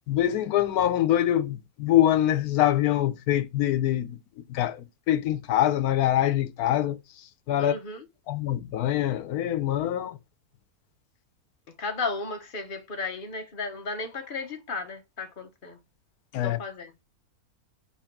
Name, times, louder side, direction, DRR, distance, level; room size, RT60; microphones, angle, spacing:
voice 1, 0.1-4.2 4.5-7.8 8.3-10.2 16.3-16.6, left 12 dB, 80° left, 1.1 m, -24 dB
voice 2, 7.6-8.0 11.8-15.8 16.4-16.9, left 3 dB, 40° left, 1.0 m, -34 dB
4.7 x 4.5 x 5.8 m
omnidirectional pair, 1.6 m